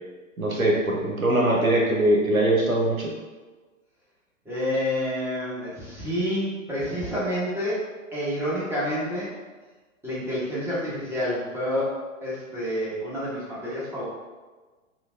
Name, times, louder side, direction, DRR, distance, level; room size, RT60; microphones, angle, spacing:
voice 1, 0.4-3.1, right 1 dB, 85° right, -2 dB, 0.9 m, -22 dB
voice 2, 4.4-9.3 10.0-14.1, equal, 5° right, -9 dB, 1.0 m, -28 dB
5.9 x 2.2 x 2.5 m, 1.3 s
figure-of-eight pair, 105°, 41 cm